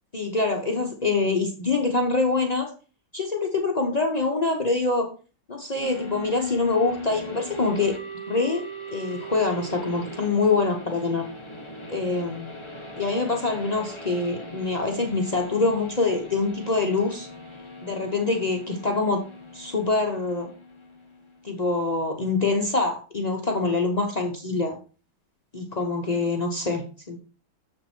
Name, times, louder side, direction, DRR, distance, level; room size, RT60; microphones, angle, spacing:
voice 1, 0.1-2.7 3.1-5.1 5.5-8.0 8.3-8.6 8.9-11.3 11.9-12.5 13.0-17.3 17.8-19.2 19.5-20.5 21.4-24.8 25.5-27.2, left 3 dB, 90° left, 2 dB, 0.3 m, -25 dB
sound 1, 5.8-21.5, equal, 20° left, 1.0 m, -39 dB
7.0 x 6.7 x 4.4 m, 0.37 s
omnidirectional pair, 2.3 m